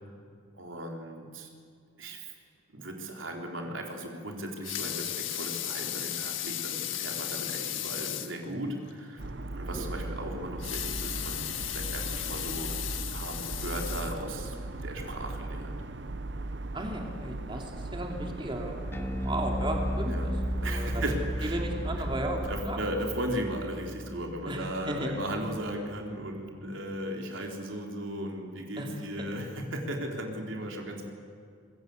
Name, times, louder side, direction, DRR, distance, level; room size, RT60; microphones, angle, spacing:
voice 1, 0.6-1.5 2.0-2.3 2.7-9.2 9.5-12.7 13.0-14.6 14.8-15.8 20.0-20.3 20.6-21.6 22.5-31.1, right 1 dB, 90° right, 2 dB, 4.1 m, -36 dB
Water tap faucet / Sink (filling or washing) / Liquid, 4.5-8.4 8.9-9.0 9.3-9.4 10.5-14.6 15.2-15.3, left 12 dB, 90° left, 1.8 m, -35 dB
sound 1, 9.2-22.6, right 2 dB, 65° right, 0.9 m, -38 dB
voice 2, 16.7-20.3 20.6-21.0 21.4-22.8 24.4-25.1 28.8-29.1, right 1 dB, 25° right, 1 dB, 3.0 m, -35 dB
Bass guitar, 18.9-25.4, equal, 15° left, 1.8 m, -34 dB
26.5 x 22.0 x 8.1 m, 2.2 s
head